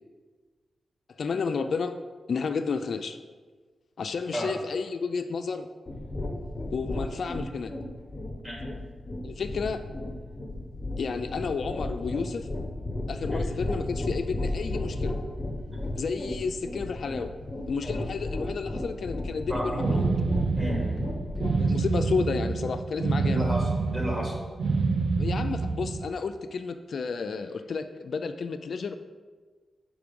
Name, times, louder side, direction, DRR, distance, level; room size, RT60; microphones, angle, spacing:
voice 1, 1.2-1.9 2.3-3.2 4.0-5.7 6.7-7.7 9.2-9.8 11.0-12.5 13.1-15.2 16.0-17.3 17.7-20.0 21.6-23.5 25.2-28.9, left 5 dB, 70° left, 8 dB, 0.3 m, -31 dB
sound 1, 5.9-21.7, left 1 dB, 25° left, 1.1 m, -34 dB
voice 2, 19.5-20.0 20.6-20.9 23.2-24.4, equal, 25° right, -2 dB, 2.0 m, -32 dB
sound 2, 19.8-26.1, right 4 dB, 65° right, 0.5 m, -27 dB
5.0 x 4.8 x 5.2 m, 1.4 s
cardioid pair, 75°, 0 cm